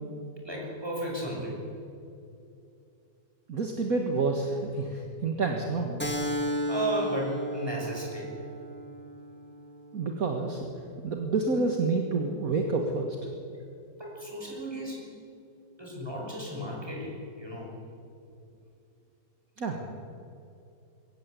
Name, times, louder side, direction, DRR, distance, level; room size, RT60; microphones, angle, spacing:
voice 1, 0.4-1.7 6.7-8.3 14.0-15.1 15.8-17.7, right 1 dB, 15° right, -2 dB, 6.3 m, -34 dB
voice 2, 3.5-6.1 9.9-10.7 11.0-13.2 19.6-19.9, right 3 dB, 50° right, 2 dB, 2.0 m, -28 dB
Keyboard (musical), 6.0-11.1, equal, 5° left, 1.9 m, -34 dB
23.0 x 17.0 x 8.4 m, 2.6 s
omnidirectional pair, 1.9 m